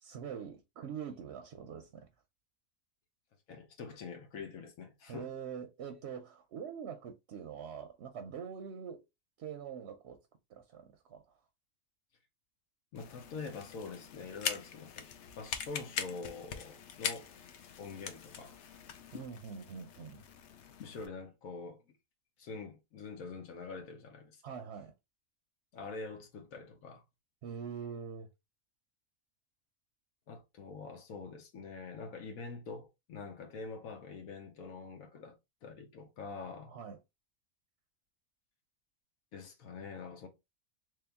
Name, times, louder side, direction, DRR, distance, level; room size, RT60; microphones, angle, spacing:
voice 1, 0.0-2.1 5.1-9.0 9.4-10.2 10.5-11.4 19.1-20.2 24.4-24.9 27.4-28.3 36.7-37.0, right 7 dB, 65° right, 0.7 m, -44 dB
voice 2, 3.5-5.3 12.9-15.1 15.4-17.3 17.8-18.5 20.8-21.8 22.4-24.4 25.7-27.0 30.3-36.7 39.3-40.3, left 4 dB, 85° left, 1.3 m, -45 dB
sound 1, 12.9-21.1, left 7 dB, 65° left, 0.8 m, -42 dB
3.2 x 2.9 x 3.4 m
omnidirectional pair, 1.4 m